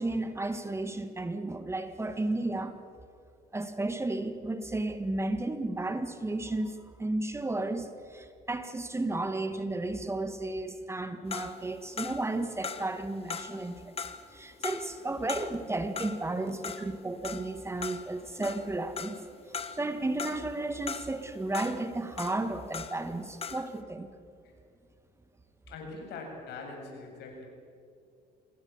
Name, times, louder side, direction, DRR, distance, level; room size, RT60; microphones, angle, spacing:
voice 1, 0.0-2.8 3.5-13.9 14.3-19.2 19.7-24.1, right 2 dB, 15° right, 9 dB, 1.7 m, -33 dB
sound 1, 11.3-23.1 23.4-23.8, left 6 dB, 35° left, 1.6 m, -40 dB
voice 2, 25.7-27.4, left 3 dB, 75° left, 2 dB, 7.4 m, -42 dB
27.5 x 20.5 x 7.4 m, 2.4 s
cardioid pair, 110°, 17 cm